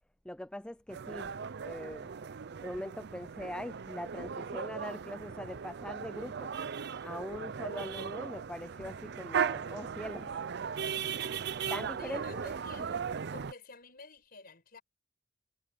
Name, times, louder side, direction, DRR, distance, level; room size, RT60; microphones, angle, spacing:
voice 1, 0.2-1.3 1.6-2.1 2.6-6.5 7.0-10.4 11.7-12.5, left 1 dB, 5° left, 0.4 m, -42 dB
sound 1, 0.9-13.5, right 7 dB, 60° right, 0.5 m, -37 dB
voice 2, 12.0-14.8, left 3 dB, 50° left, 6.4 m, -51 dB
head